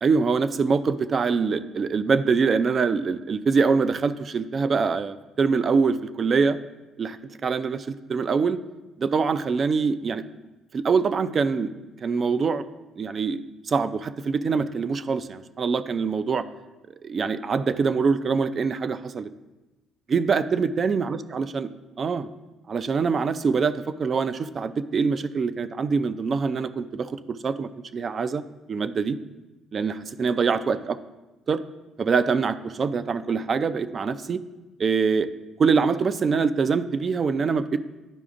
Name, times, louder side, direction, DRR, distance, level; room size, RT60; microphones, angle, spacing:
voice 1, 0.0-6.6 7.0-7.2 7.4-8.6 9.0-10.2 10.7-11.7 12.0-12.6 13.0-13.4 13.7-16.4 17.0-19.3 20.1-21.7 22.0-22.3 22.7-28.4 28.7-29.2 29.7-31.0 31.5-31.6 32.0-34.4 34.8-35.3 35.6-37.8, right 5 dB, 45° right, 12 dB, 0.4 m, -24 dB
10.5 x 4.9 x 2.5 m, 1.1 s
supercardioid pair, 70°, 0 cm